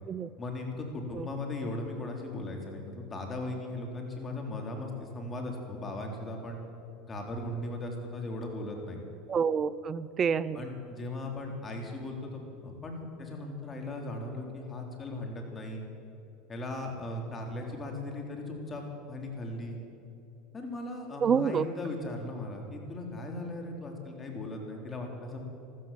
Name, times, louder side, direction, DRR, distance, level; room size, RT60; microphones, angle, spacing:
voice 1, 0.4-6.6 7.1-9.0 10.5-15.8 16.5-19.8 20.5-25.4, left 2 dB, 25° left, 2 dB, 3.6 m, -38 dB
voice 2, 9.3-10.6 21.2-21.6, right 6 dB, 35° right, 18 dB, 0.5 m, -28 dB
14.0 x 14.0 x 7.5 m, 2.8 s
hypercardioid pair, 90°, 0 cm